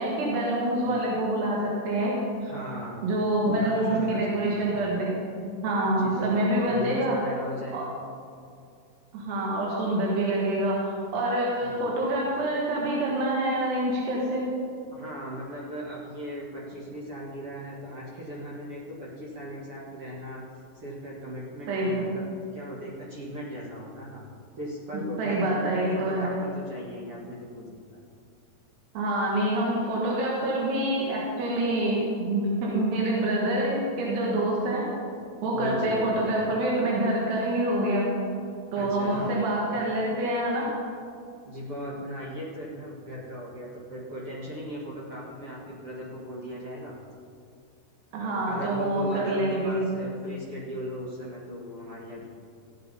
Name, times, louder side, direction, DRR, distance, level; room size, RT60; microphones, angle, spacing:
voice 1, 0.0-2.1 3.0-5.2 5.6-7.2 7.7-7.8 9.1-14.4 21.7-22.1 24.9-26.3 29.0-34.8 35.4-38.1 38.7-40.7 48.1-49.9, right 1 dB, 85° right, -4 dB, 3.8 m, -26 dB
voice 2, 2.4-3.1 3.4-4.6 5.9-7.9 11.6-11.9 14.9-20.4 20.7-24.2 24.6-27.8 35.5-36.0 38.7-39.4 41.4-46.9 48.2-52.3, equal, 55° right, -5 dB, 1.6 m, -38 dB
16.0 x 8.6 x 5.5 m, 2.3 s
omnidirectional pair, 4.7 m